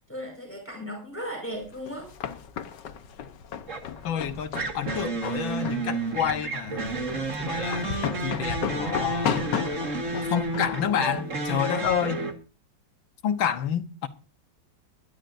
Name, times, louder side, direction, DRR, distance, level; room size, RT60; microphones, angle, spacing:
voice 1, 0.0-2.1, equal, 5° left, 5.1 m, -36 dB
sound 1, 1.6-12.0, left 8 dB, 65° left, 1.6 m, -35 dB
sound 2, 3.7-4.0 4.5-12.3, right 3 dB, 40° right, 2.1 m, -31 dB
voice 2, 4.0-7.0 7.4-9.4 10.1-12.3 13.2-14.1, left 8 dB, 85° left, 1.9 m, -29 dB
21.5 x 12.0 x 2.6 m
omnidirectional pair, 2.1 m